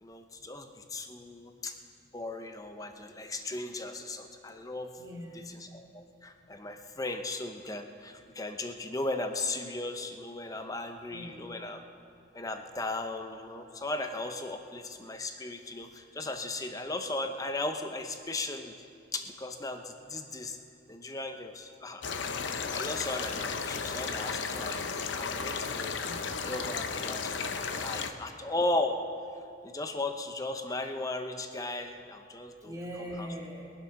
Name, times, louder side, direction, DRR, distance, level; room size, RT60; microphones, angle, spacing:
voice 1, 0.0-1.8 2.1-4.9 5.7-11.8 12.3-18.8 19.1-20.6 20.9-22.1 22.4-26.1 26.5-29.0 29.6-32.7 33.2-33.3, left 2 dB, 20° left, 6 dB, 0.7 m, -36 dB
voice 2, 5.0-5.5 10.6-10.8 11.1-11.6 13.9-14.0 26.0-26.5 32.6-33.7, equal, 20° right, -5 dB, 2.5 m, -42 dB
sound 1, 22.0-28.1, left 5 dB, 75° left, 0.7 m, -34 dB
21.5 x 7.8 x 5.8 m, 2.5 s
head